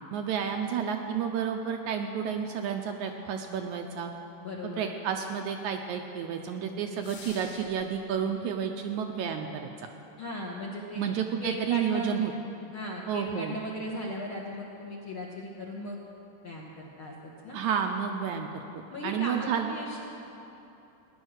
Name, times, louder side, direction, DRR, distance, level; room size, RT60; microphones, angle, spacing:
voice 1, 0.1-4.1 4.6-9.7 11.0-12.3 13.1-13.6 17.5-19.7, right 7 dB, 80° right, 4 dB, 1.8 m, -31 dB
voice 2, 4.4-4.9 10.2-11.0 11.4-12.2 12.7-16.0 16.4-17.6 18.9-20.0, left 1 dB, 60° left, -2 dB, 1.4 m, -37 dB
sound 1, 7.0-8.0, left 5 dB, 80° left, 3.0 m, -47 dB
17.0 x 10.0 x 6.4 m, 2.9 s
omnidirectional pair, 3.9 m